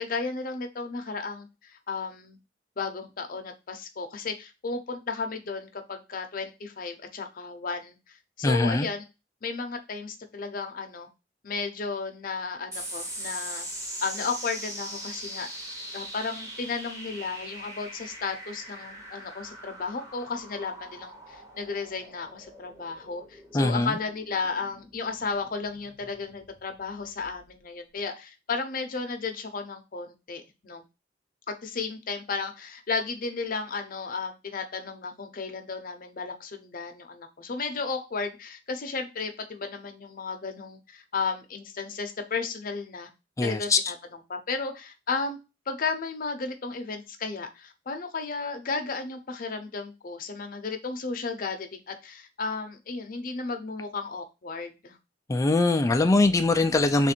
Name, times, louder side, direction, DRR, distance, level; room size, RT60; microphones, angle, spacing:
voice 1, 0.0-2.4 2.8-9.0 9.4-11.1 11.4-13.7 14.0-15.5 15.9-30.8 31.5-43.1 43.4-45.4 45.7-55.0 55.7-55.8, left 4 dB, 50° left, 0.7 m, -34 dB
voice 2, 8.4-8.9 23.5-24.0 43.4-43.8 55.3-57.1, left 2 dB, 15° left, 0.3 m, -22 dB
sound 1, 12.7-27.5, right 1 dB, 15° right, 1.0 m, -41 dB
3.6 x 2.5 x 4.3 m
head